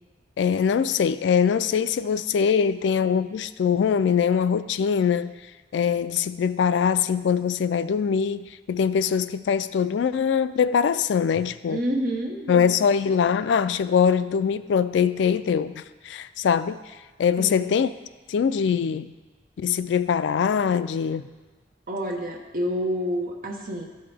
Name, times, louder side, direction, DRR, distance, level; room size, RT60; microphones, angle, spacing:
voice 1, 0.4-5.3 5.7-11.8 12.5-16.8 17.2-17.9 18.3-19.1 19.6-21.3, left 7 dB, 70° left, 0.3 m, -23 dB
voice 2, 11.7-12.7 17.4-17.8 21.9-23.9, equal, 45° right, 1.0 m, -28 dB
13.5 x 5.6 x 3.4 m
head